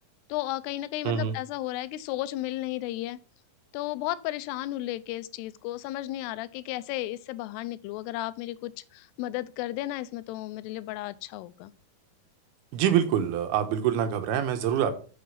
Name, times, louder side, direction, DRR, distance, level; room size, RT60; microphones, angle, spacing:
voice 1, 0.3-3.2 3.7-11.7, left 15 dB, 85° left, 2.7 m, -34 dB
voice 2, 1.0-1.4 12.7-14.9, right 9 dB, 80° right, 2.9 m, -25 dB
6.9 x 6.4 x 5.7 m
omnidirectional pair, 4.6 m